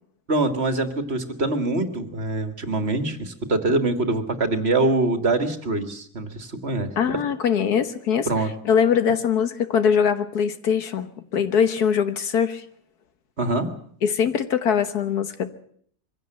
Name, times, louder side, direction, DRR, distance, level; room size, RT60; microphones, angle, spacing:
voice 1, 0.3-7.1 8.3-8.5 13.4-13.7, right 2 dB, 40° right, 7 dB, 2.0 m, -24 dB
voice 2, 7.0-12.6 14.0-15.5, left 7 dB, 85° left, 10 dB, 1.8 m, -22 dB
23.0 x 16.0 x 7.7 m, 0.63 s
omnidirectional pair, 1.6 m